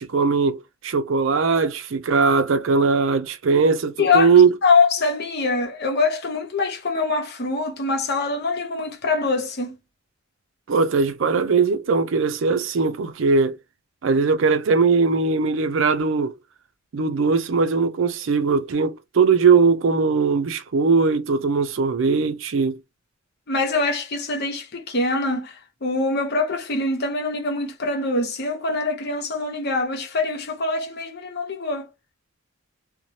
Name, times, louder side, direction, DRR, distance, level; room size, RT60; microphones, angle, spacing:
voice 1, 0.0-4.5 10.7-13.6 14.0-16.3 16.9-22.8, right 4 dB, 70° right, 0.4 m, -20 dB
voice 2, 4.0-9.7 23.5-31.9, left 3 dB, 55° left, 0.8 m, -24 dB
2.6 x 2.1 x 3.0 m
head